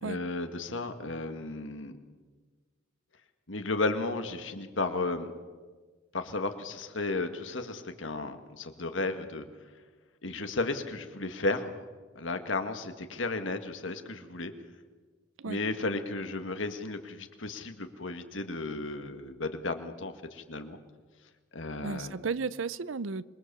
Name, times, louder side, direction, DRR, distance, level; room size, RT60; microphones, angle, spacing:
voice 1, 0.0-1.9 3.5-5.3 6.1-9.5 10.2-11.8 12.2-14.5 15.5-20.8 21.5-22.1, left 2 dB, 75° left, 1.9 m, -34 dB
voice 2, 21.8-23.2, right 4 dB, 85° right, 0.7 m, -34 dB
26.5 x 22.0 x 7.0 m
head